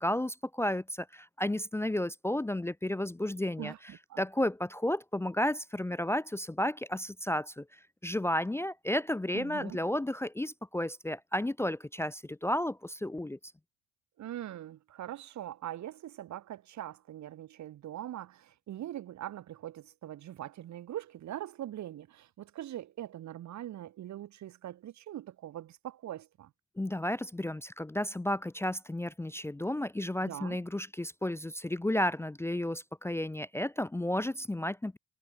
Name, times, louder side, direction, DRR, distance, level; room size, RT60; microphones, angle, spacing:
voice 1, 0.0-3.7 4.2-13.4 26.8-35.0, left 1 dB, 10° left, 0.6 m, -32 dB
voice 2, 3.6-4.2 9.3-9.8 14.2-26.5 30.2-30.6, right 12 dB, 65° right, 1.3 m, -42 dB
cardioid pair, 90°, 30 cm